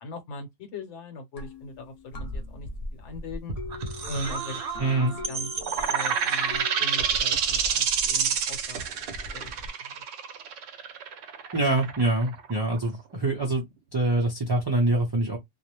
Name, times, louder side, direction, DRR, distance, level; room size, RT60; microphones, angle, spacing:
voice 1, 0.0-3.6 4.1-9.5 9.8-10.0, left 1 dB, 70° left, 1.1 m, -40 dB
sound 1, 1.4-6.8, left 2 dB, 40° left, 0.6 m, -43 dB
sound 2, 2.1-8.4 8.6-9.7, right 3 dB, 55° right, 0.8 m, -36 dB
voice 2, 4.8-5.2 11.5-13.6 13.9-15.4, right 2 dB, 30° right, 0.5 m, -25 dB
sound 3, 5.6-13.0, right 7 dB, 85° right, 0.9 m, -27 dB
2.4 x 2.0 x 2.9 m
omnidirectional pair, 1.3 m